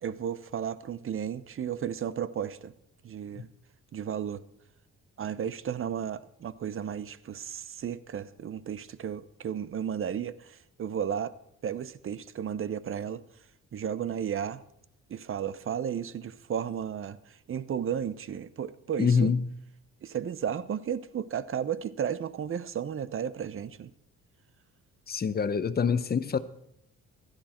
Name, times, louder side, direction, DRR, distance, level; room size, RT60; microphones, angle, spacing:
voice 1, 0.0-2.7 3.0-3.5 3.9-4.4 5.2-11.3 11.6-13.2 13.7-14.6 15.1-19.3 20.0-23.9, right 8 dB, 45° right, 0.8 m, -33 dB
voice 2, 19.0-19.4 25.1-26.4, left 6 dB, 30° left, 0.9 m, -25 dB
16.0 x 12.0 x 4.4 m
cardioid pair, 90°, 30 cm